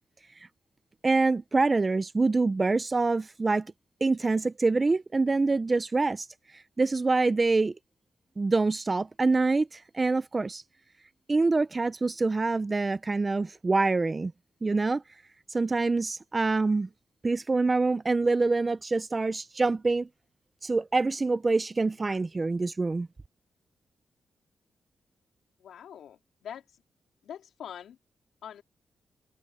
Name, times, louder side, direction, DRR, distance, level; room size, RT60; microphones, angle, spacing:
voice 1, 1.0-3.7 4.0-6.3 6.5-7.7 8.4-10.6 11.3-14.3 14.6-15.0 15.5-16.9 17.2-20.1 20.6-23.1, right 3 dB, 30° right, 0.6 m, -25 dB
voice 2, 25.6-26.7 27.2-28.0 28.4-28.6, left 9 dB, 90° left, 4.0 m, -43 dB
cardioid pair, 85°, 0 cm